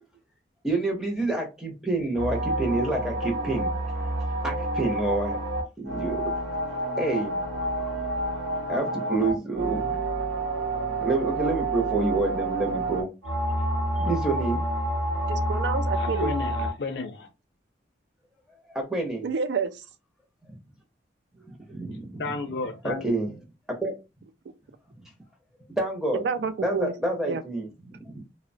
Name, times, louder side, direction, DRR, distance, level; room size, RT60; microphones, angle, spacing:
voice 1, 0.6-3.7 4.4-5.4 5.8-6.3 7.0-8.2 8.7-10.0 11.0-13.1 14.0-14.6 18.7-19.2 21.4-22.2 22.8-23.3 23.7-23.9 25.8-26.2 26.6-28.2, right 2 dB, 5° right, 0.5 m, -28 dB
sound 1, 2.1-16.7, right 1 dB, 85° right, 0.8 m, -28 dB
voice 2, 15.3-16.3 19.2-19.8 24.5-24.6 26.1-26.9 27.3-27.4, right 5 dB, 70° right, 0.3 m, -29 dB
voice 3, 15.9-17.3 22.2-23.1, left 3 dB, 70° left, 0.5 m, -32 dB
2.8 x 2.0 x 2.5 m
head